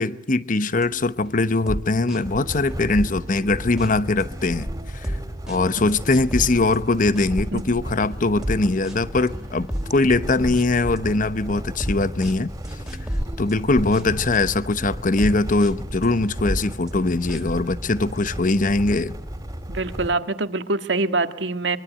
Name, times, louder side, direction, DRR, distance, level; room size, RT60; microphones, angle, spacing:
voice 1, 0.0-5.2 5.5-12.5 13.4-19.1, left 3 dB, 45° left, 0.9 m, -21 dB
Lofi Beat Loafy, 0.8-14.4 14.8-17.7, equal, 5° right, 3.2 m, -35 dB
sound 1, 2.2-20.2, equal, 20° right, 2.9 m, -33 dB
voice 2, 19.7-21.8, right 3 dB, 80° right, 1.7 m, -24 dB
24.0 x 23.0 x 9.1 m
head